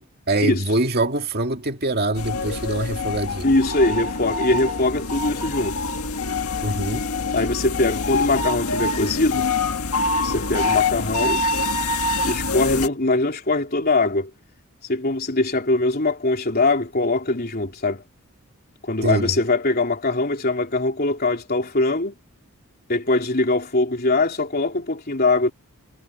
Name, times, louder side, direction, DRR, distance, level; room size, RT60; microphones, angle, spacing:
voice 1, 0.0-3.5 6.6-7.1 19.0-19.4, right 1 dB, 45° right, 2.2 m, -24 dB
sound 1, 2.2-12.9, left 3 dB, 80° left, 1.7 m, -25 dB
voice 2, 3.4-5.8 7.3-9.4 10.2-11.4 12.2-14.3 14.9-18.0 18.8-22.2 22.9-25.5, left 2 dB, 45° left, 3.7 m, -22 dB
head